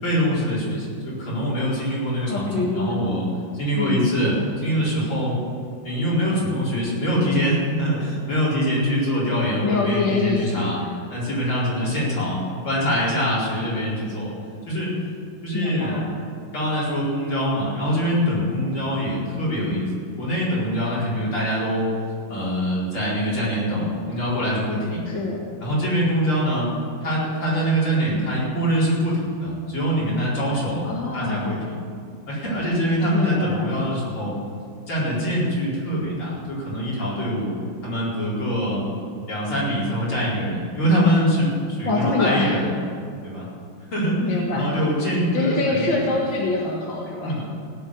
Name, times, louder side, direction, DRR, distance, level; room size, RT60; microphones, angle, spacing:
voice 1, 0.0-3.3 3.5-5.4 5.8-10.8 11.1-14.3 14.7-14.9 15.4-19.9 20.2-21.9 22.3-25.1 25.6-26.7 27.0-30.8 31.1-31.8 32.3-34.3 34.9-37.5 37.8-38.8 39.3-42.8 43.2-43.5 43.9-44.2 44.5-46.0 47.2-47.4, equal, 80° left, -7 dB, 5.5 m, -24 dB
voice 2, 2.2-3.1 3.8-4.1 9.6-10.7 15.5-16.1 25.1-25.4 30.5-31.5 33.1-33.8 41.8-42.6 44.2-44.8 45.1-47.4, left 3 dB, 65° left, -3 dB, 2.2 m, -25 dB
17.0 x 7.7 x 8.7 m, 2.3 s
omnidirectional pair, 2.3 m